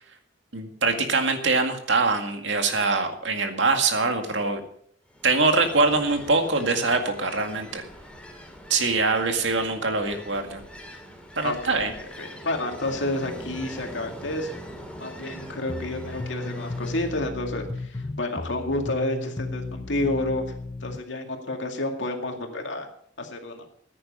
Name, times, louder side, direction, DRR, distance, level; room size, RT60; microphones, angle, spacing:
voice 1, 0.5-4.6 5.2-7.8 8.7-10.6 11.4-11.9, right 3 dB, 80° right, 5 dB, 2.0 m, -23 dB
Ocean, 5.1-17.3, equal, 5° left, 2.5 m, -42 dB
voice 2, 11.4-11.9 12.2-14.5 15.0-20.4 20.8-22.9 23.2-23.6, left 2 dB, 80° left, 4 dB, 2.2 m, -30 dB
sound 1, 15.7-21.0, left 2 dB, 20° left, 0.6 m, -35 dB
14.5 x 9.9 x 5.5 m, 0.65 s
head